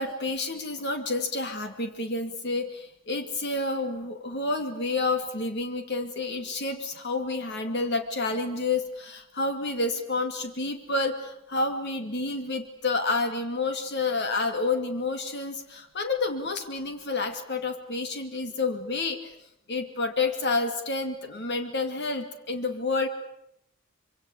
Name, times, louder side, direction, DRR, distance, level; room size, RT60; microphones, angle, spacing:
voice 1, 0.0-19.3 19.7-23.1, left 3 dB, 55° left, 7 dB, 2.4 m, -29 dB
25.5 x 24.5 x 8.5 m, 0.79 s
head